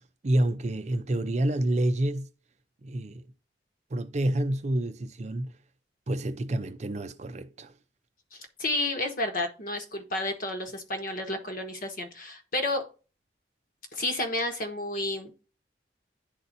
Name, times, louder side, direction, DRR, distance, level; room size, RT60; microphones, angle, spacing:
voice 1, 0.2-2.3 2.8-3.2 3.9-5.5 6.1-7.7, right 1 dB, 40° right, 0.5 m, -28 dB
voice 2, 8.3-12.9 13.9-15.3, left 1 dB, 50° left, 1.3 m, -31 dB
10.5 x 4.1 x 2.6 m
head